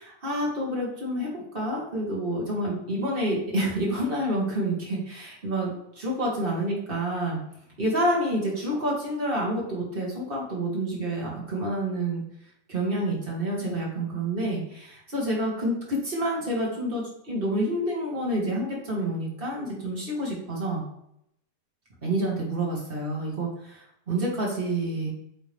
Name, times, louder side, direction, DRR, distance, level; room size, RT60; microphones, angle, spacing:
voice 1, 0.0-5.7 6.0-7.4 7.8-12.2 12.7-20.8 22.0-25.1, right 1 dB, 25° right, -4 dB, 1.5 m, -28 dB
8.5 x 3.8 x 3.5 m, 0.75 s
omnidirectional pair, 3.5 m